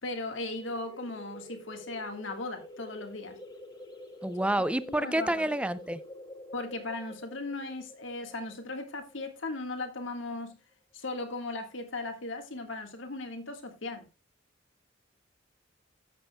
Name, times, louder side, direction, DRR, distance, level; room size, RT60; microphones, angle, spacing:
voice 1, 0.0-3.4 4.9-5.5 6.5-10.6 10.9-14.1, left 2 dB, 70° left, 1.6 m, -37 dB
sound 1, 0.6-9.9, left 1 dB, 20° left, 1.3 m, -48 dB
voice 2, 4.2-6.0, right 1 dB, 5° right, 0.4 m, -28 dB
14.0 x 7.9 x 2.2 m
head